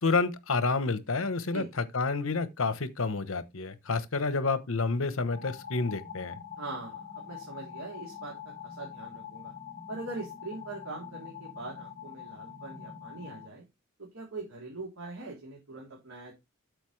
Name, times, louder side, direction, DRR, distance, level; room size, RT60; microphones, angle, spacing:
voice 1, 0.0-6.4, left 3 dB, 70° left, 1.0 m, -29 dB
sound 1, 5.3-13.5, left 8 dB, 45° left, 0.9 m, -44 dB
voice 2, 6.6-8.3 8.6-9.5 9.9-13.6 14.1-16.3, right 3 dB, 85° right, 3.2 m, -42 dB
8.2 x 6.4 x 3.2 m
head